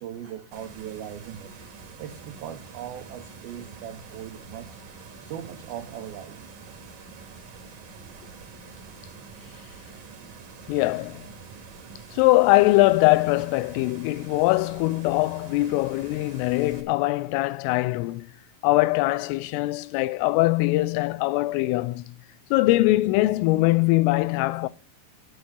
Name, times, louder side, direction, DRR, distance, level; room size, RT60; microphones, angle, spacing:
voice 1, 0.0-4.7 5.2-6.5, right 10 dB, 85° right, 2.1 m, -39 dB
sound 1, 0.5-16.8, right 5 dB, 50° right, 2.5 m, -45 dB
voice 2, 10.7-11.3 12.1-18.3 18.6-22.1 22.5-24.7, left 19 dB, 85° left, 3.2 m, -22 dB
9.8 x 7.8 x 6.8 m
omnidirectional pair, 5.7 m